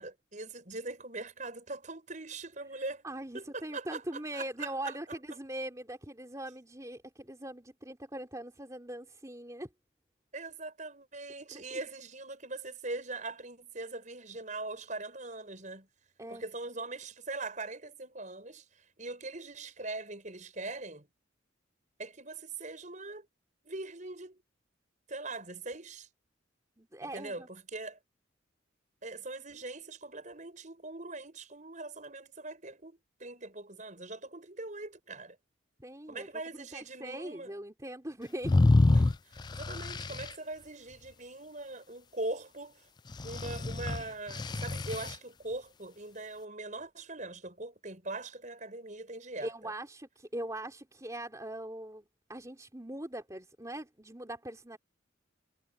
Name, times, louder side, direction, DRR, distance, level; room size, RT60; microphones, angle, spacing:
voice 1, 0.0-3.0 3.3-5.2 10.3-15.9 16.3-18.7 19.0-21.1 22.0-23.3 23.6-24.4 25.1-26.1 27.0-28.0 29.0-35.4 36.1-37.5 38.9-42.9 43.2-49.7, right 2 dB, 40° right, 6.7 m, -41 dB
voice 2, 3.0-9.7 11.5-11.8 16.2-16.4 26.8-27.5 35.8-36.3 36.5-38.5 49.4-54.8, right 1 dB, 15° right, 3.4 m, -41 dB
sound 1, 38.4-40.3 43.1-45.1, left 2 dB, 20° left, 0.3 m, -27 dB
head